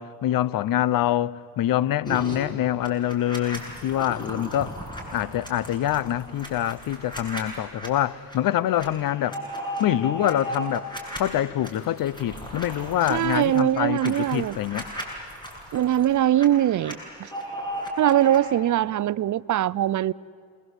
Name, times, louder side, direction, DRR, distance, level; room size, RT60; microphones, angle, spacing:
voice 1, 0.0-4.8 5.1-9.4 9.8-10.9 11.2-14.9, left 12 dB, 80° left, 0.8 m, -25 dB
sound 1, 2.1-2.4 2.8-7.9 8.3-8.4 8.7-11.2 11.6-16.5 16.7-18.4, equal, 15° left, 7.6 m, -36 dB
voice 2, 13.1-14.6 15.7-17.3 18.0-20.1, right 12 dB, 60° right, 0.6 m, -22 dB
28.0 x 22.0 x 8.0 m
cardioid pair, 70°, 34 cm